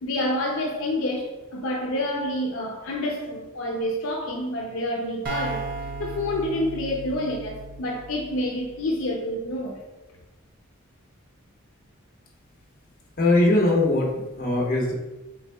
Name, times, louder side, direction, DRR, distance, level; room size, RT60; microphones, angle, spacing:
voice 1, 0.0-9.8, left 1 dB, 70° left, 0.5 m, -28 dB
sound 1, 5.3-8.9, right 4 dB, 45° right, 0.7 m, -35 dB
voice 2, 13.2-14.9, left 2 dB, 45° left, 0.9 m, -21 dB
5.7 x 3.5 x 2.2 m
head